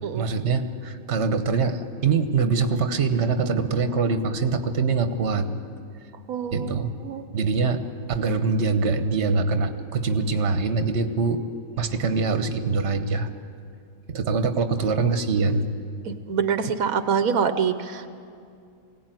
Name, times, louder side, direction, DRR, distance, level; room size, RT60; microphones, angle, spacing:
voice 1, 0.1-5.5 6.5-6.9 7.3-7.8 8.1-11.4 11.8-13.3 14.1-15.6, right 4 dB, 55° right, 8 dB, 1.4 m, -23 dB
voice 2, 6.3-6.7 7.0-7.2 16.1-18.1, right 6 dB, 85° right, 10 dB, 1.4 m, -25 dB
21.5 x 17.5 x 9.2 m, 2.4 s
omnidirectional pair, 1.4 m